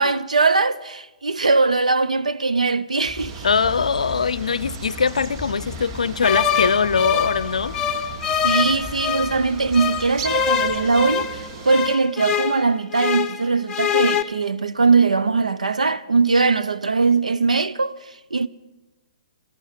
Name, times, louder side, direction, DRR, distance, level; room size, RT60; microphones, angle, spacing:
voice 1, 0.0-3.5 8.4-18.5, right 4 dB, 90° right, 0.7 m, -20 dB
sound 1, 3.1-11.6, left 4 dB, ahead, 3.3 m, -40 dB
sound 2, 3.2-12.0, right 6 dB, 40° right, 1.1 m, -38 dB
voice 2, 3.4-7.8, left 5 dB, 80° left, 0.5 m, -22 dB
sound 3, 6.2-9.4 9.7-13.4 13.7-14.2, left 8 dB, 20° left, 0.8 m, -24 dB
14.0 x 11.0 x 9.3 m
hypercardioid pair, 130°, 4 cm